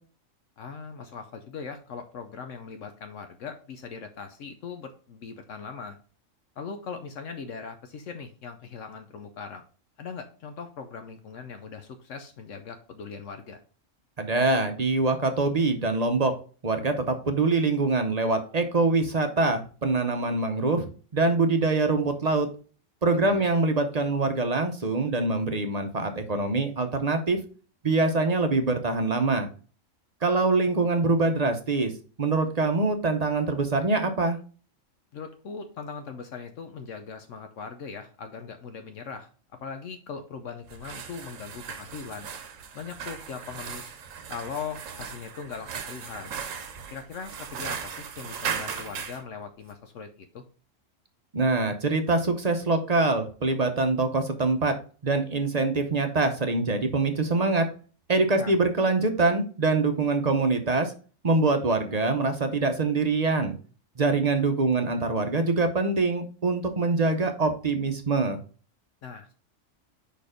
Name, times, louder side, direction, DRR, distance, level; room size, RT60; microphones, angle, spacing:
voice 1, 0.6-6.0 6.6-9.6 10.0-13.6 23.2-23.5 35.1-39.3 39.6-42.3 42.7-44.0 44.3-46.3 46.9-50.4 58.3-58.5 69.0-69.4, left 5 dB, 75° left, 6 dB, 1.0 m, -40 dB
voice 2, 14.2-16.3 16.6-22.5 23.0-27.4 27.8-29.5 30.2-31.9 32.2-34.4 51.3-54.8 55.0-57.7 58.1-60.9 61.2-63.5 64.0-68.4, right 3 dB, 40° right, 7 dB, 0.7 m, -24 dB
sound 1, 40.6-49.2, right 7 dB, 80° right, 1.1 m, -37 dB
5.1 x 4.5 x 4.9 m, 0.39 s
omnidirectional pair, 1.3 m